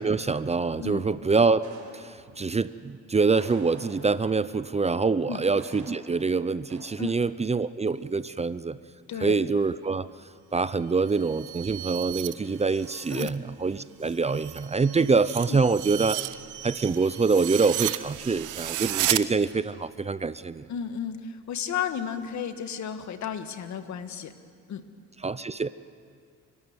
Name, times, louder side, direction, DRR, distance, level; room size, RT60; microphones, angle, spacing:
voice 1, 0.0-1.6 1.9-8.8 9.2-10.1 10.5-16.2 16.6-20.6 25.2-25.7, right 4 dB, 20° right, 15 dB, 0.6 m, -25 dB
sound 1, 1.6-2.5 3.3-4.4 5.6-6.3 6.7-7.1, right 4 dB, 65° right, 4.5 m, -47 dB
sound 2, 11.0-13.4 13.7-19.2, right 15 dB, 80° right, 0.8 m, -33 dB
voice 2, 20.7-24.3 24.7-24.9, left 8 dB, 70° left, 9 dB, 1.6 m, -33 dB
30.0 x 13.0 x 9.5 m, 2.2 s
cardioid pair, 90°, 30 cm